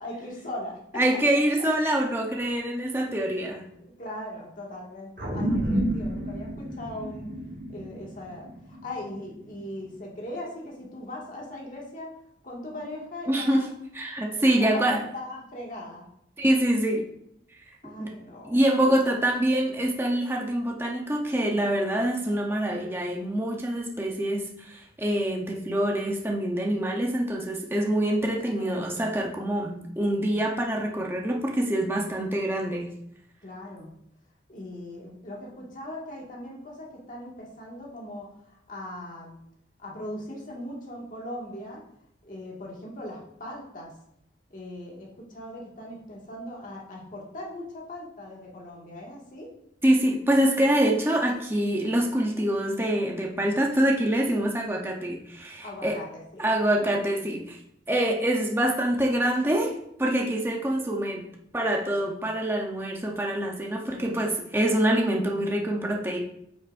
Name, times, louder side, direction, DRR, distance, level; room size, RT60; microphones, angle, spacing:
voice 1, 0.0-1.0 1.6-1.7 3.8-7.3 7.7-12.2 12.4-13.7 14.3-16.1 17.8-19.2 28.6-28.9 33.4-33.9 34.5-39.4 39.8-41.8 42.2-43.9 44.5-49.5 55.6-56.4 63.9-64.2, left 1 dB, 45° left, -3 dB, 1.9 m, -39 dB
voice 2, 1.0-3.7 13.3-13.6 13.9-15.0 16.4-17.1 18.0-18.1 18.4-32.9 49.8-56.0 56.4-57.6 57.9-59.7 60.0-61.2 61.5-66.2, right 1 dB, 15° right, 0 dB, 0.8 m, -25 dB
sound 1, 5.2-9.9, right 1 dB, 60° right, 2.0 m, -31 dB
9.1 x 6.1 x 2.6 m, 0.76 s
head